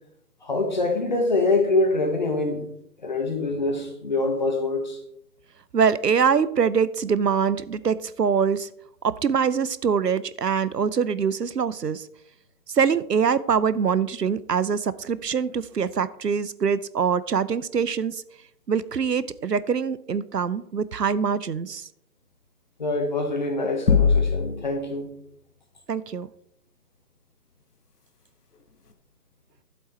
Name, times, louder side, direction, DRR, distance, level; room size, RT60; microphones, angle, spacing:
voice 1, 0.4-2.7 3.0-5.0 22.8-25.1, left 2 dB, 25° left, 1.5 m, -25 dB
voice 2, 5.7-8.7 9.0-12.1 12.7-18.2 18.7-21.9 25.9-26.3, right 6 dB, 70° right, 0.8 m, -24 dB
sound 1, 23.9-24.8, left 5 dB, 65° left, 1.8 m, -20 dB
12.0 x 8.0 x 4.3 m
figure-of-eight pair, 170°, 50 cm